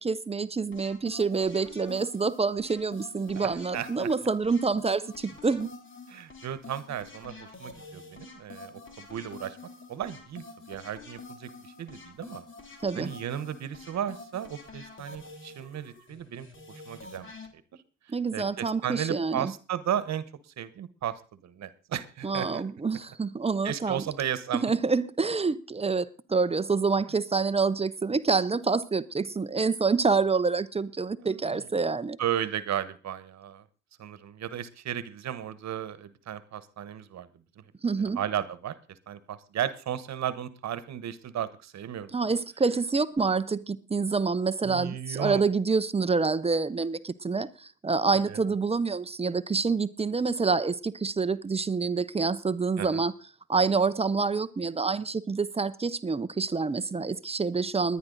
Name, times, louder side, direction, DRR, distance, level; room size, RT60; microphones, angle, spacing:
voice 1, 0.0-5.7 12.8-13.1 18.1-19.5 22.2-24.1 24.5-32.2 37.8-38.2 42.1-53.1 53.5-58.0, right 4 dB, 20° right, 0.6 m, -27 dB
sound 1, 0.7-17.5, left 3 dB, 40° left, 2.9 m, -47 dB
voice 2, 3.3-4.1 6.1-9.6 9.9-12.4 12.9-16.5 16.9-17.3 18.3-20.2 20.6-22.6 23.6-24.7 31.2-31.4 32.2-33.6 34.0-37.3 38.0-38.7 39.1-42.1 44.6-45.4 48.3-48.4 52.8-53.0, right 10 dB, 65° right, 1.2 m, -34 dB
20.0 x 10.5 x 3.9 m
cardioid pair, 90°, 30 cm